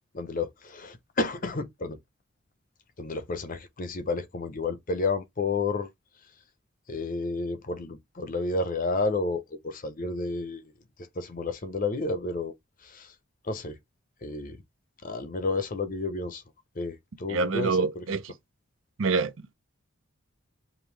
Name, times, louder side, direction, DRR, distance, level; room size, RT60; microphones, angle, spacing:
voice 1, 0.1-2.0 3.0-5.9 6.9-10.7 11.1-12.5 12.8-13.1 13.4-13.8 14.2-14.6 15.0-16.4 16.8-18.0, left 3 dB, 40° left, 0.6 m, -31 dB
voice 2, 17.3-18.3 19.0-19.3, right 4 dB, 70° right, 0.6 m, -26 dB
5.2 x 2.6 x 3.2 m
head